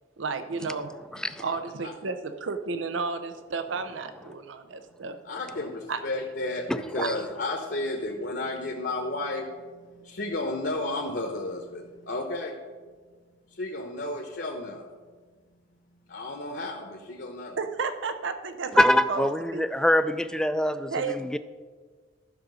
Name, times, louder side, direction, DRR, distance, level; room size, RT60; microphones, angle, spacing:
voice 1, 0.2-0.9 1.2-5.2 5.9-6.0 7.0-7.1 17.6-19.6 20.9-21.3, right 4 dB, 85° right, 9 dB, 0.6 m, -32 dB
voice 2, 1.1-1.4 6.7-7.2 18.7-21.4, left 1 dB, 5° left, 11 dB, 0.3 m, -24 dB
voice 3, 5.2-12.6 13.5-14.9 16.1-17.6, left 2 dB, 60° left, 2 dB, 0.9 m, -33 dB
12.0 x 5.0 x 6.2 m, 1.5 s
head